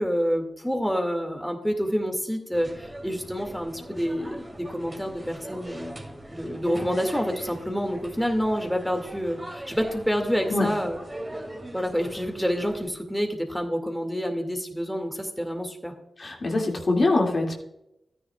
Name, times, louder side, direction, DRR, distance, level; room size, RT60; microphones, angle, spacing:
voice 1, 0.0-6.0 6.3-11.0 11.7-15.9, equal, ahead, 3 dB, 2.1 m, -28 dB
sound 1, 2.5-12.9, right 1 dB, 20° right, 2.8 m, -41 dB
voice 2, 16.2-17.6, left 2 dB, 55° left, 0 dB, 2.3 m, -23 dB
13.0 x 9.9 x 2.4 m, 0.86 s
supercardioid pair, 40°, 0 cm